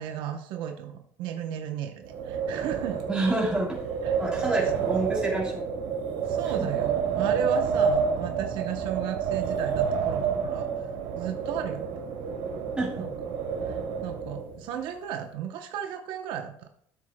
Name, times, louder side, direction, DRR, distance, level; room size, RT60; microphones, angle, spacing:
voice 1, 0.0-3.0 4.0-4.2 6.2-10.7 11.2-12.0 13.0-13.3 13.6-16.7, right 9 dB, 70° right, 4 dB, 0.8 m, -35 dB
Wind, 2.0-14.6, right 6 dB, 85° right, 1.8 m, -29 dB
voice 2, 3.1-3.8 4.2-5.7 6.6-6.7 12.8-13.1, right 2 dB, 10° right, -3 dB, 3.3 m, -28 dB
13.5 x 7.6 x 2.2 m, 0.66 s
cardioid pair, 135°, 9 cm